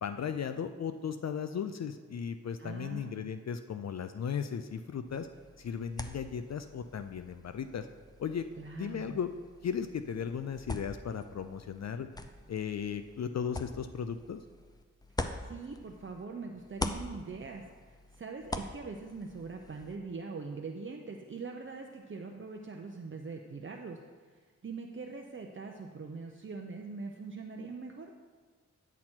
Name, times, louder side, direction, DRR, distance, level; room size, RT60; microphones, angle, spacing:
voice 1, 0.0-5.3 5.6-7.9 8.2-8.5 8.7-9.3 9.6-12.1 12.5-14.4, left 7 dB, 60° left, 9 dB, 0.5 m, -36 dB
voice 2, 2.6-3.3 8.6-9.2 15.2-24.0 24.6-28.1, right 4 dB, 40° right, 2 dB, 0.7 m, -42 dB
sound 1, 5.1-16.3 16.6-20.0, left 2 dB, 15° left, 0.5 m, -44 dB
9.8 x 6.0 x 4.4 m, 1.5 s
wide cardioid pair, 70°, 30 cm